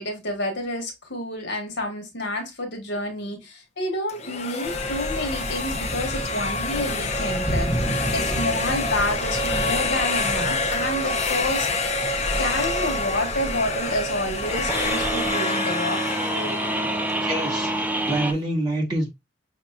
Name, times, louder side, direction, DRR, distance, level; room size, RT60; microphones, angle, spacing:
voice 1, 0.0-7.7 8.1-11.7 12.4-16.0, left 1 dB, 65° left, 1.6 m, -29 dB
sound 1, 4.1-17.9, left 3 dB, 40° left, 0.7 m, -27 dB
sound 2, 4.6-15.3, equal, 15° left, 1.1 m, -32 dB
sound 3, 12.7-18.3, right 1 dB, 10° right, 0.5 m, -28 dB
voice 2, 17.2-19.1, right 1 dB, 25° right, 2.4 m, -26 dB
6.1 x 3.0 x 2.3 m
head